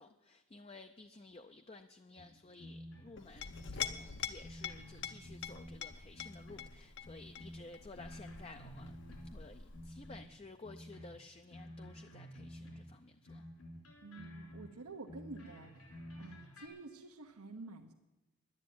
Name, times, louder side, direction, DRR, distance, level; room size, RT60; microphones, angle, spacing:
voice 1, 0.0-13.5, left 3 dB, 25° left, 7 dB, 0.4 m, -54 dB
sound 1, 2.2-3.2 3.4-5.9 6.1-6.7 7.0-9.5 9.7-13.0 13.3-16.7, equal, 75° left, 3.7 m, -51 dB
Chink clink, 3.2-10.3, left 8 dB, 55° left, 0.8 m, -45 dB
voice 2, 14.0-15.8 16.2-17.9, right 3 dB, 85° right, 3 dB, 1.0 m, -49 dB
11.0 x 9.7 x 9.5 m, 1.1 s
head